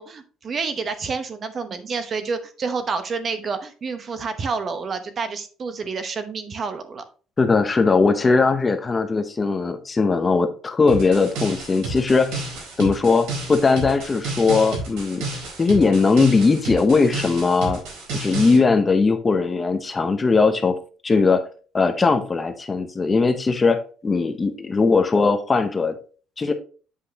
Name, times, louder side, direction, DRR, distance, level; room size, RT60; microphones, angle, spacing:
voice 1, 0.0-7.0, right 4 dB, 35° right, 9 dB, 0.9 m, -29 dB
voice 2, 7.4-12.4 12.8-15.3 15.6-17.8 18.1-20.8 21.0-21.4 21.7-26.0 26.4-26.5, left 4 dB, 20° left, 8 dB, 0.7 m, -19 dB
sound 1, 10.9-18.6, right 3 dB, 85° right, 4.1 m, -31 dB
8.2 x 5.6 x 2.9 m, 0.38 s
cardioid pair, 145°, 0 cm